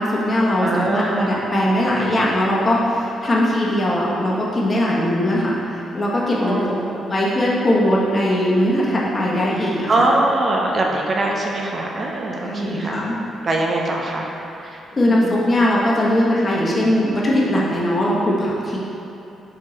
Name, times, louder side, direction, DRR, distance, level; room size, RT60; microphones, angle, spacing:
voice 1, 0.0-6.6 7.1-10.1 12.4-13.2 14.9-18.8, left 1 dB, 40° left, -5 dB, 1.1 m, -20 dB
voice 2, 0.6-1.3 6.4-7.1 9.9-13.0 13.2-14.3 14.6-14.8 15.1-15.4, right 2 dB, 45° right, -1 dB, 0.6 m, -22 dB
4.3 x 3.8 x 3.2 m, 2.8 s
hypercardioid pair, 50°, 0 cm